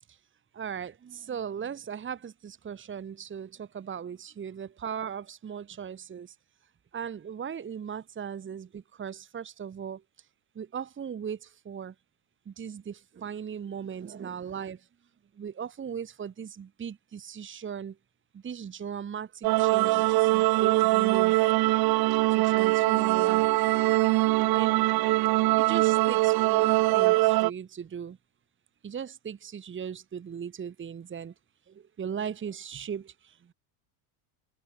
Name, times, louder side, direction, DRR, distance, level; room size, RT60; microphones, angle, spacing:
voice 1, 0.5-6.3 6.9-10.0 10.6-11.9 12.5-14.9 15.4-18.0 18.3-21.4 22.3-23.5 24.4-25.0 25.6-28.2 28.8-31.3 31.7-33.5, right 7 dB, 25° right, 2.2 m, -38 dB
sound 1, 19.4-27.5, right 20 dB, 50° right, 0.8 m, -23 dB
cardioid pair, 130°, 48 cm